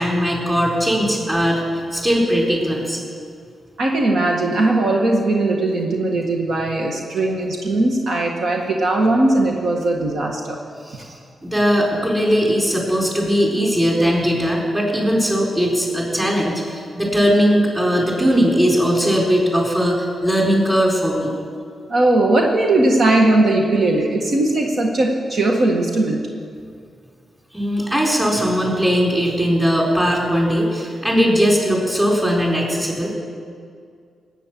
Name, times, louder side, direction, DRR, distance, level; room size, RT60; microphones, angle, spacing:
voice 1, 0.0-3.0 10.8-11.1 11.4-21.3 27.5-33.1, equal, 15° right, -2 dB, 4.6 m, -19 dB
voice 2, 3.8-10.6 10.9-11.0 21.9-26.2, right 2 dB, 65° right, 0 dB, 1.7 m, -19 dB
18.5 x 9.3 x 7.6 m, 2.2 s
cardioid pair, 95°, 0 cm